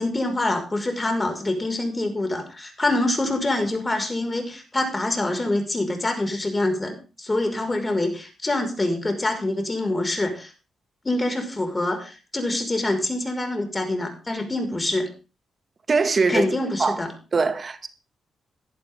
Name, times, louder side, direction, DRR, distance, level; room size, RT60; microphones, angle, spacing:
voice 1, 0.0-10.5 11.0-15.1 16.3-17.1, left 2 dB, 25° left, 5.7 m, -25 dB
voice 2, 15.9-16.5 16.8-17.0 17.3-17.9, right 4 dB, 45° right, 2.0 m, -21 dB
16.5 x 12.0 x 3.8 m
supercardioid pair, 55°, 0 cm